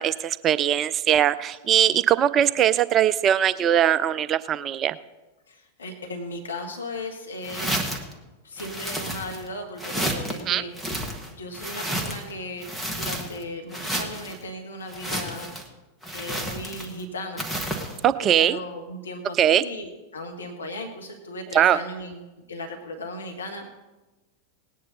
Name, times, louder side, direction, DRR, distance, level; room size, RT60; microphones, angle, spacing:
voice 1, 0.0-5.0 10.5-10.6 18.0-18.6 19.4-19.6 21.5-21.8, right 10 dB, 30° right, 16 dB, 0.4 m, -21 dB
voice 2, 5.5-7.9 8.4-10.9 11.3-12.7 12.9-15.5 16.1-17.5 17.8-17.9 18.2-23.7, left 1 dB, 70° left, 3 dB, 1.3 m, -36 dB
sound 1, 7.4-8.1 8.6-9.5 9.8-10.4 10.7-12.3 12.6-13.4 13.7-14.4 14.9-15.7 16.0-17.0 17.4-18.0, right 1 dB, ahead, 1.7 m, -31 dB
19.0 x 9.5 x 4.0 m, 1.1 s
figure-of-eight pair, 90°, 0 cm